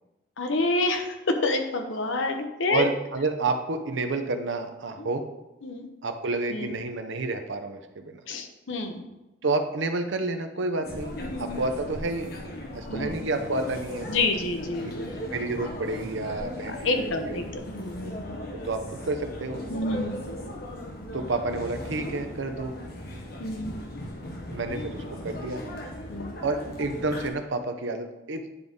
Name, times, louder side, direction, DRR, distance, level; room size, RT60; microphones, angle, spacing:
voice 1, 0.4-2.9 5.0-5.1 5.6-5.9 6.5-6.7 8.3-9.0 11.2-11.6 12.9-13.1 14.1-15.1 16.7-18.4 19.7-20.2 23.4-23.7 26.1-26.4, left 2 dB, 75° left, 5 dB, 0.8 m, -28 dB
voice 2, 2.7-5.3 6.0-8.2 9.4-12.3 12.7-14.1 15.3-17.4 18.5-19.6 21.1-22.7 24.5-25.6 26.4-28.4, right 3 dB, 70° right, 7 dB, 0.7 m, -30 dB
sound 1, 10.8-27.3, left 1 dB, 50° left, 1.0 m, -37 dB
9.6 x 3.9 x 3.6 m, 1.0 s
head